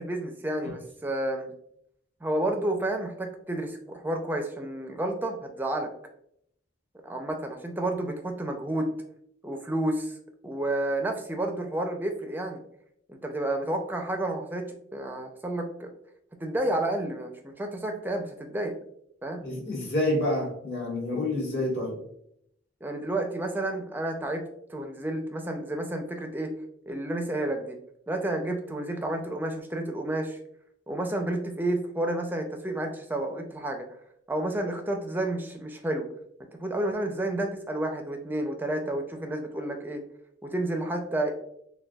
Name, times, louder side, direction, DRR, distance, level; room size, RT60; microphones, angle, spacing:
voice 1, 0.0-1.5 2.2-5.9 7.0-8.9 9.4-10.1 10.4-12.6 13.1-15.9 16.4-18.8 19.2-19.4 22.8-24.4 24.7-26.5 26.9-27.8 28.1-30.4 30.9-33.8 34.3-36.1 36.6-40.0 40.4-41.3, right 1 dB, 10° right, 4 dB, 0.4 m, -30 dB
voice 2, 19.4-22.0, left 1 dB, 60° left, -3 dB, 1.5 m, -28 dB
6.4 x 2.2 x 2.3 m, 0.72 s
head